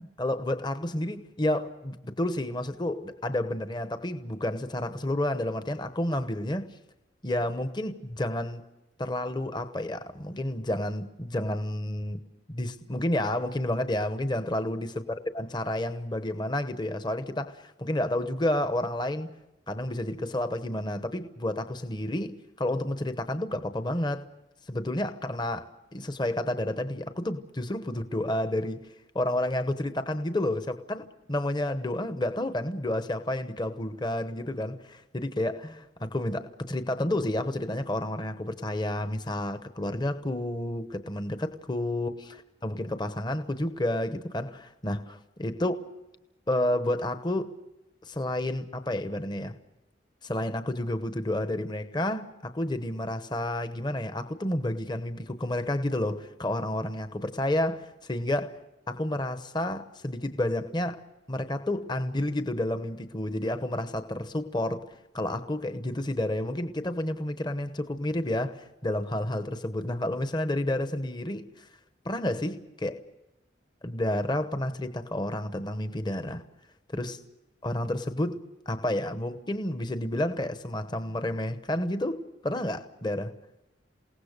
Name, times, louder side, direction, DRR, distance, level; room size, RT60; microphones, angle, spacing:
voice 1, 0.0-6.7 7.2-8.6 9.0-12.2 12.5-14.9 15.3-19.3 19.7-24.2 24.7-28.8 29.1-42.1 42.6-45.8 46.5-47.5 48.0-49.6 50.2-58.5 58.9-61.0 61.3-64.8 65.1-71.7 72.0-73.0 73.8-76.4 76.9-77.2 77.6-78.4 78.7-83.3, left 1 dB, 25° left, 0.9 m, -30 dB
28.0 x 18.5 x 6.7 m
head